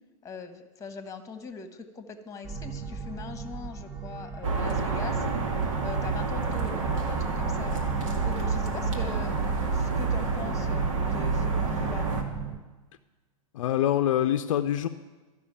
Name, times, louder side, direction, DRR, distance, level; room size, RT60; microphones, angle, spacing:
voice 1, 0.2-5.2 5.8-7.7 8.2-9.4 9.7-12.1, left 4 dB, 20° left, 9 dB, 1.3 m, -41 dB
sound 1, 2.4-12.6, right 4 dB, 10° right, 0.8 m, -35 dB
sound 2, 4.4-12.2, right 4 dB, 65° right, 1.9 m, -29 dB
voice 2, 13.5-14.9, left 11 dB, 65° left, 8 dB, 0.6 m, -25 dB
12.5 x 6.2 x 8.8 m, 1.2 s
hypercardioid pair, 110°, 18 cm